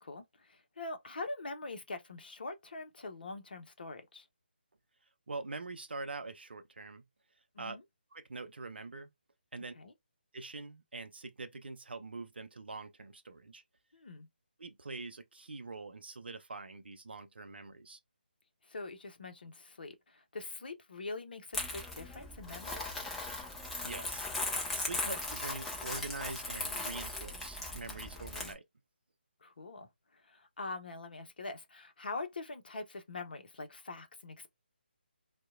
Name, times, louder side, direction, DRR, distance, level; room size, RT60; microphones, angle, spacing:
voice 1, 0.0-4.3 7.5-7.8 9.7-9.9 13.9-14.3 18.6-22.9 29.4-34.5, left 3 dB, 60° left, 0.6 m, -44 dB
voice 2, 5.3-7.0 7.6-7.8 8.1-9.1 9.5-9.7 10.3-13.6 14.6-18.0 23.8-28.6, right 3 dB, 70° right, 0.4 m, -44 dB
Crumpling crinkling, 21.5-28.5, left 2 dB, 5° left, 0.4 m, -38 dB
2.7 x 2.1 x 2.4 m
figure-of-eight pair, 150°, 6 cm